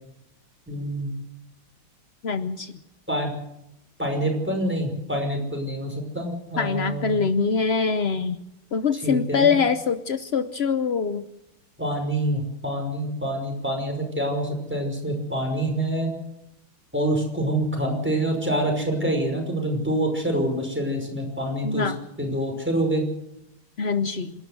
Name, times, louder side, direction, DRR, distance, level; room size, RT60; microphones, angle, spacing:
voice 1, 0.7-1.1 3.1-3.3 4.0-7.2 9.0-9.5 11.8-16.1 16.9-21.9 22.2-23.0, right 1 dB, 5° right, 3 dB, 5.5 m, -26 dB
voice 2, 2.2-2.7 6.6-8.4 8.7-11.2 21.6-22.0 23.8-24.3, left 5 dB, 75° left, 11 dB, 0.5 m, -24 dB
27.5 x 12.5 x 8.0 m, 0.84 s
omnidirectional pair, 2.3 m